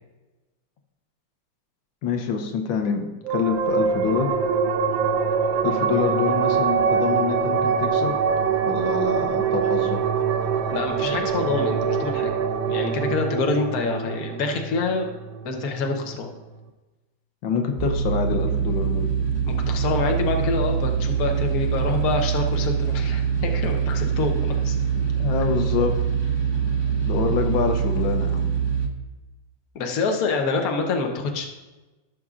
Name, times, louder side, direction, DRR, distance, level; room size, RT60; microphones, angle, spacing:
voice 1, 2.0-4.4 5.6-8.2 8.6-10.0 17.4-19.1 25.0-26.0 27.1-28.5, left 6 dB, 90° left, 4 dB, 1.7 m, -26 dB
sound 1, 3.2-16.1, right 6 dB, 80° right, 1.4 m, -24 dB
voice 2, 10.7-12.4 12.7-15.1 15.4-16.3 19.5-24.8 29.7-31.5, left 3 dB, 55° left, 3 dB, 1.3 m, -26 dB
sound 2, 17.8-28.9, right 7 dB, 35° left, 0.4 m, -24 dB
15.5 x 6.3 x 2.4 m, 1.1 s
omnidirectional pair, 2.1 m